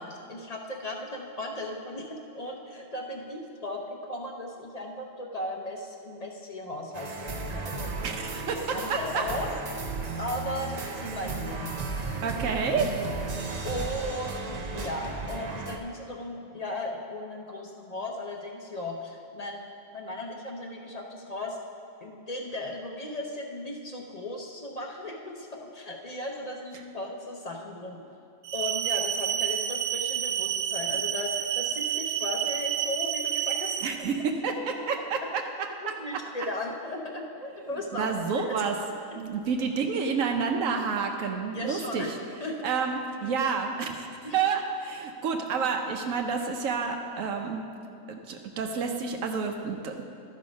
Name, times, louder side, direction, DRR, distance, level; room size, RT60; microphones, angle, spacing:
voice 1, 0.0-7.9 8.5-9.8 10.2-11.7 13.6-19.6 19.9-21.6 22.0-28.0 28.5-33.8 35.8-38.6 41.5-42.1 42.4-42.5 44.2-44.4, left 1 dB, 35° left, 1 dB, 0.8 m, -36 dB
sound 1, 6.9-15.8, right 3 dB, 45° right, 0.6 m, -35 dB
voice 2, 8.0-9.2 12.2-12.9 33.8-36.2 37.9-38.7 39.1-42.1 42.6-44.1 44.3-47.6 48.1-50.0, right 5 dB, 90° right, 3 dB, 1.1 m, -29 dB
sound 2, 28.4-33.9, right 10 dB, 70° right, 0.9 m, -29 dB
12.5 x 5.5 x 5.2 m, 2.6 s
omnidirectional pair, 1.3 m